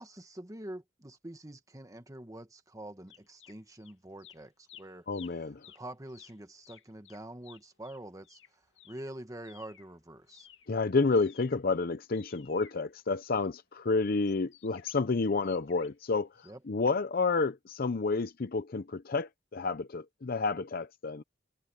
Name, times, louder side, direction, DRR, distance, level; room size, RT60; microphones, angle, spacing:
voice 1, 0.0-5.1 5.4-5.5 5.8-10.5 16.4-16.6, right 1 dB, 20° right, 1.6 m, -46 dB
sound 1, 3.1-3.9 4.2-9.9 10.2-13.5 14.2-16.1 16.4-16.5, left 10 dB, 80° left, 2.5 m, -57 dB
voice 2, 5.1-5.7 10.7-21.2, left 3 dB, 55° left, 0.6 m, -30 dB
head